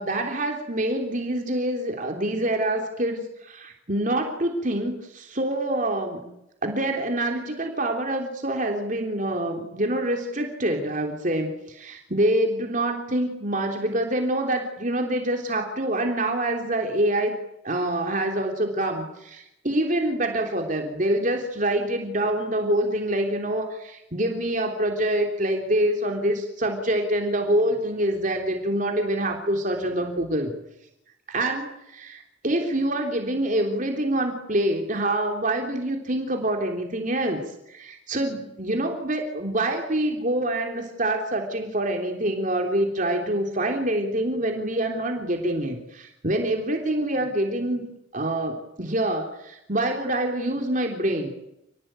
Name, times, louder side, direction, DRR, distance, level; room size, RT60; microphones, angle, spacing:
voice 1, 0.0-6.3 6.6-17.4 17.6-30.5 31.3-47.9 48.1-51.3, right 1 dB, 40° right, 3 dB, 3.4 m, -26 dB
29.0 x 21.0 x 9.0 m, 0.84 s
head